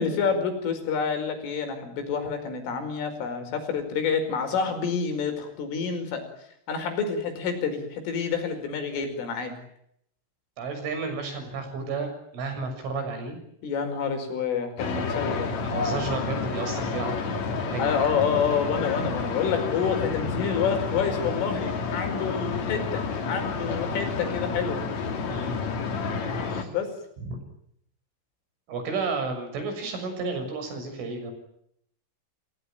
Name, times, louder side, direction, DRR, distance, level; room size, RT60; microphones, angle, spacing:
voice 1, 0.0-6.2 6.7-9.5 13.6-15.5 17.8-24.8 26.6-26.9, left 6 dB, 85° left, 6 dB, 7.5 m, -28 dB
voice 2, 10.6-13.4 15.6-18.0 25.3-25.6 26.5-26.7 27.2-27.4 28.7-31.3, right 4 dB, 80° right, 7 dB, 9.0 m, -32 dB
sound 1, 14.8-26.6, left 4 dB, 45° left, 3.3 m, -30 dB
30.0 x 19.5 x 9.1 m, 0.73 s
omnidirectional pair, 5.6 m